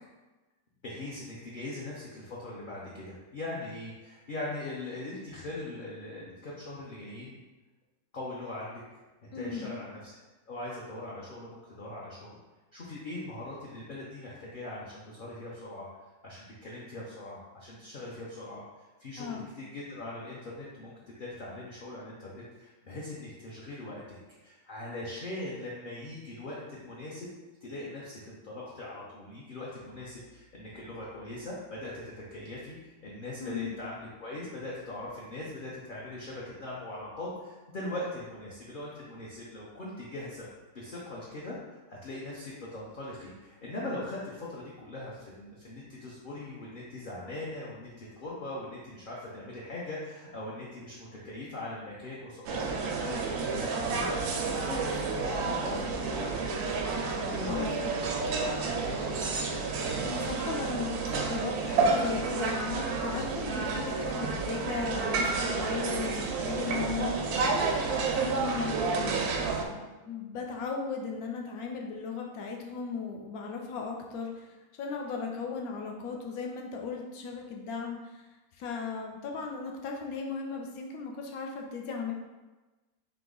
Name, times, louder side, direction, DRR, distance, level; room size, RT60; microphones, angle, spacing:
voice 1, 0.8-7.4 8.1-8.8 9.2-10.1 10.5-12.4 12.7-15.9 16.2-18.6 19.0-24.2 24.4-27.3 27.6-40.5 40.7-55.1 55.3-56.6 57.3-59.2, left 2 dB, 50° left, -6 dB, 0.7 m, -41 dB
voice 2, 9.3-9.8 19.2-19.5 33.4-33.7 57.5-57.8 60.0-82.1, left 5 dB, 80° left, 1 dB, 1.1 m, -37 dB
sound 1, 52.5-69.7, right 4 dB, 85° right, 1.1 m, -30 dB
3.5 x 2.9 x 3.8 m, 1.2 s
omnidirectional pair, 1.5 m